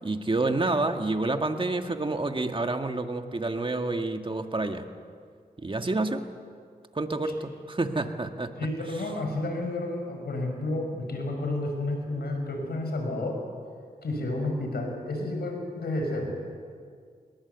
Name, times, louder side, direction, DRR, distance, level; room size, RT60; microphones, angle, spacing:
voice 1, 0.0-4.9 5.6-6.2 6.9-8.7, right 2 dB, 30° right, 6 dB, 1.8 m, -28 dB
voice 2, 8.6-13.4 14.0-16.5, left 2 dB, 85° left, 3 dB, 6.0 m, -31 dB
25.0 x 21.5 x 8.2 m, 2.1 s
cardioid pair, 60°, 16 cm